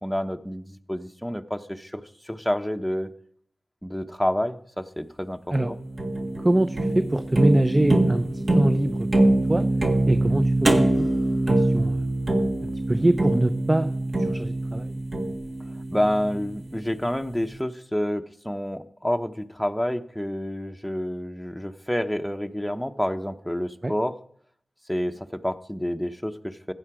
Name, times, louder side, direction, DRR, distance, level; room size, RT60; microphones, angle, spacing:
voice 1, 0.0-3.1 3.8-5.4 5.7-5.8 15.9-24.1 24.9-26.7, equal, 5° left, 6 dB, 0.9 m, -28 dB
sound 1, 5.5-16.7, right 1 dB, 55° right, 1.8 m, -24 dB
voice 2, 6.4-9.7 10.1-11.1 11.5-12.0 12.6-13.9 14.2-15.0 23.8-23.9, right 1 dB, 25° right, 11 dB, 0.6 m, -24 dB
15.0 x 9.2 x 4.9 m, 0.66 s
cardioid pair, 55°, 0 cm